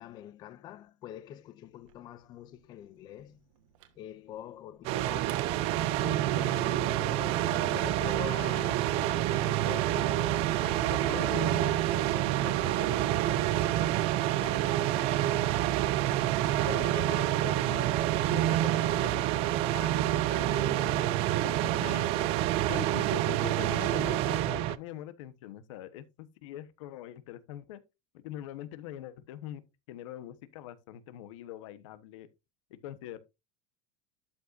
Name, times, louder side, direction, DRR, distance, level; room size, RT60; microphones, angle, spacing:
voice 1, 0.0-3.5 4.0-5.4 5.9-15.8 16.4-17.8 18.3-22.7, left 11 dB, 25° left, 0.5 m, -44 dB
Telephone, 1.7-6.5, right 10 dB, 80° right, 1.6 m, -54 dB
sound 1, 4.8-24.8, right 14 dB, 35° right, 0.4 m, -28 dB
voice 2, 17.4-17.9 21.3-21.4 21.7-22.1 22.5-27.8 28.2-29.6 29.9-32.3 32.7-33.2, left 13 dB, 75° left, 1.2 m, -43 dB
12.0 x 5.5 x 2.6 m
supercardioid pair, 175°, 16 cm